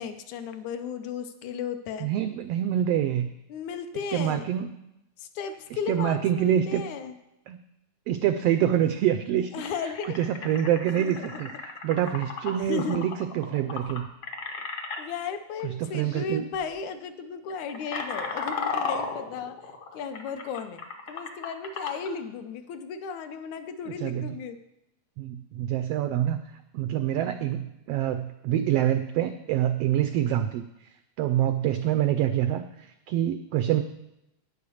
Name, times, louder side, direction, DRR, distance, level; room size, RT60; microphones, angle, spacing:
voice 1, 0.0-2.1 3.5-4.5 5.2-7.2 9.5-10.2 11.0-11.4 12.6-13.1 15.0-20.8 21.1-24.6, left 6 dB, 80° left, 8 dB, 2.1 m, -35 dB
voice 2, 2.0-3.3 4.1-4.7 5.9-6.8 7.5-7.6 8.1-9.5 10.2-14.1 15.6-16.5 23.9-24.3 25.2-26.4 26.7-30.6 31.2-33.8, right 11 dB, 90° right, 9 dB, 1.3 m, -26 dB
sound 1, 9.0-9.1 9.6-15.0 16.0-16.2 16.5-16.8 17.3-22.1, left 4 dB, 60° left, 1.0 m, -35 dB
9.6 x 6.6 x 7.0 m, 0.87 s
omnidirectional pair, 3.3 m